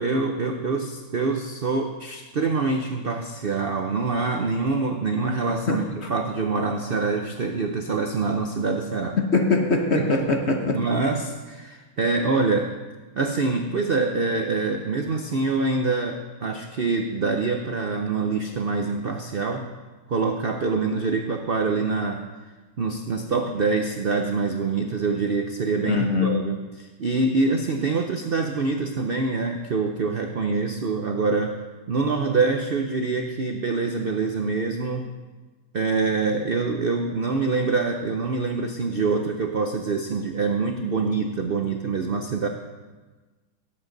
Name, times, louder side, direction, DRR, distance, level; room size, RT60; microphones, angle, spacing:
voice 1, 0.0-9.2 9.9-10.1 10.7-12.7 13.2-19.7 20.1-22.2 22.8-31.6 31.9-35.1 35.7-42.5, right 4 dB, 80° right, 4 dB, 0.5 m, -25 dB
voice 2, 5.5-6.1 9.3-10.8 25.8-26.4, left 3 dB, 45° left, 3 dB, 0.9 m, -23 dB
18.0 x 7.9 x 4.0 m, 1.3 s
omnidirectional pair, 2.0 m